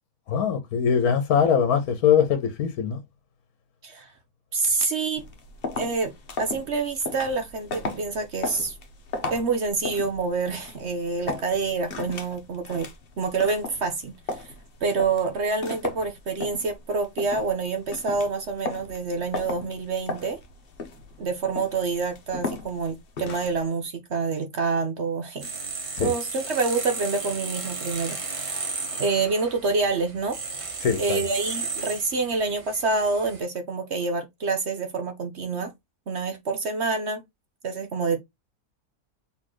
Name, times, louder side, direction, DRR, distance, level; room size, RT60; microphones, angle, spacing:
voice 1, 0.3-3.0 26.0-26.1 30.8-31.2, left 7 dB, 80° left, 1.3 m, -22 dB
voice 2, 4.5-5.2 5.8-6.1 6.4-8.8 9.3-12.9 13.2-14.5 14.8-20.4 21.2-25.5 26.0-30.4 31.0-35.7 36.1-37.2 37.6-38.2, right 4 dB, 55° right, 1.0 m, -27 dB
sound 1, 5.2-23.6, left 3 dB, 45° left, 1.0 m, -36 dB
sound 2, 25.4-33.4, right 4 dB, 30° right, 0.8 m, -34 dB
4.2 x 3.8 x 3.0 m
omnidirectional pair, 1.6 m